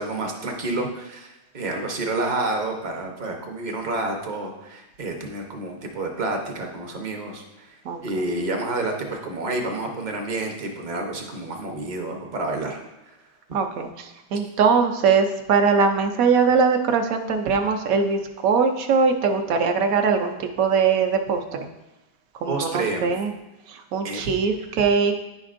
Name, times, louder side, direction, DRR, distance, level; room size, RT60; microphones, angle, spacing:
voice 1, 0.0-12.8 22.5-23.1 24.0-24.2, right 2 dB, 40° right, 2 dB, 0.7 m, -29 dB
voice 2, 13.5-21.4 22.4-23.3 23.7-25.2, right 5 dB, 65° right, 5 dB, 0.9 m, -21 dB
9.8 x 5.2 x 2.5 m, 0.99 s
omnidirectional pair, 1.8 m